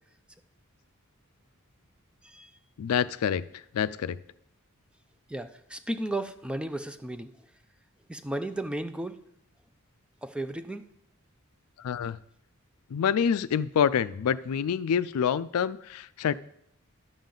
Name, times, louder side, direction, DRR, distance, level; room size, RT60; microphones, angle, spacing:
voice 1, 2.8-4.2 11.8-12.2 12.9-16.3, left 7 dB, 80° left, 16 dB, 0.4 m, -27 dB
voice 2, 5.3-7.3 8.1-9.2 10.2-10.8, right 1 dB, 5° right, 10 dB, 0.4 m, -34 dB
11.0 x 7.3 x 3.8 m, 0.73 s
head